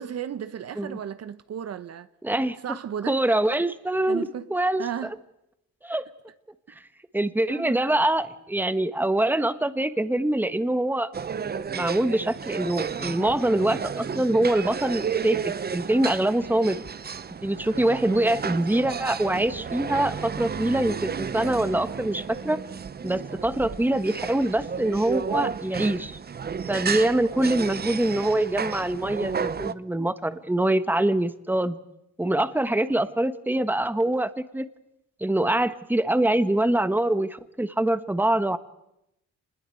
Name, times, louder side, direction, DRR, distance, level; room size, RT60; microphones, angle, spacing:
voice 1, 0.0-2.1 2.6-3.2 4.1-4.5 4.8-5.2 6.7-6.8 7.5-7.8, right 9 dB, 55° right, 1.0 m, -34 dB
voice 2, 2.2-2.6 3.1-4.8 5.8-6.0 7.1-11.1 11.7-16.8 17.4-22.6 23.0-26.2 26.7-31.8 32.2-34.6 35.2-38.6, right 1 dB, 5° right, 1.4 m, -24 dB
sound 1, 11.1-29.7, right 6 dB, 30° right, 0.9 m, -32 dB
26.0 x 21.0 x 7.9 m
cardioid pair, 90°, 30 cm